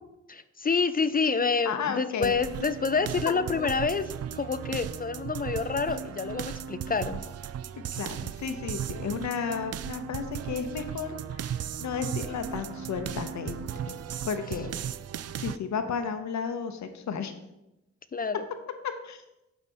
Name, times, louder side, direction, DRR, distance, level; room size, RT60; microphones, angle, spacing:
voice 1, 0.3-4.0 4.3-7.2 18.1-18.4, left 5 dB, 30° left, 13 dB, 0.4 m, -28 dB
voice 2, 1.6-2.3 7.9-13.9 14.3-14.7 15.4-17.3 19.0-19.2, left 6 dB, 70° left, 8 dB, 0.9 m, -33 dB
sound 1, 2.2-15.6, right 9 dB, 55° right, 0.4 m, -36 dB
7.2 x 4.3 x 5.4 m, 0.92 s
cardioid pair, 55°, 29 cm